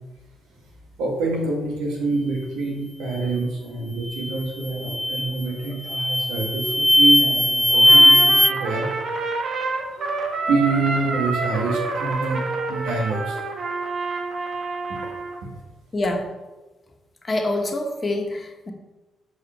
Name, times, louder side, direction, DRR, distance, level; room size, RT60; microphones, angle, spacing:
voice 1, 1.0-9.0 9.7-13.5 14.9-15.0 15.4-15.5, right 3 dB, 80° right, 0 dB, 1.8 m, -26 dB
sound 1, 4.1-4.4 4.8-5.4 5.9-8.5, left 1 dB, 5° left, 0.4 m, -17 dB
Trumpet, 7.8-15.4, right 3 dB, 60° right, 1.0 m, -28 dB
voice 2, 15.9-16.3 17.2-18.7, left 2 dB, 35° left, 3 dB, 1.4 m, -26 dB
7.0 x 4.8 x 4.5 m, 1.1 s
hypercardioid pair, 50°, 0 cm